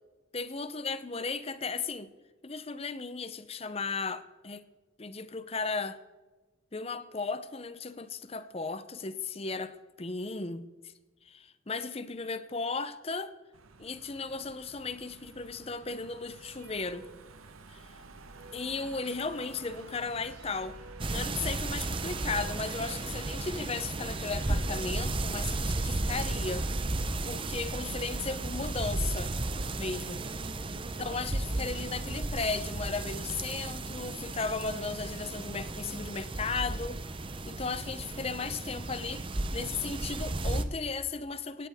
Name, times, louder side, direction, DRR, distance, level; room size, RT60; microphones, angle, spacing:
voice 1, 0.3-2.1 2.4-4.6 5.0-6.0 6.7-10.7 11.3-13.3 13.8-17.1 17.7-17.9 18.5-20.8 21.1-26.7 27.2-29.3 29.8-30.2 31.0-37.0 37.5-41.7, left 4 dB, 30° left, 0.6 m, -35 dB
Car passing by / Engine, 13.5-32.2, right 3 dB, 85° right, 1.2 m, -52 dB
sound 1, 16.3-17.4 18.1-21.3 22.0-25.2 25.9-27.0, right 5 dB, 50° right, 4.5 m, -54 dB
sound 2, 21.0-40.6, right 2 dB, 25° right, 0.7 m, -34 dB
17.5 x 16.0 x 3.6 m
head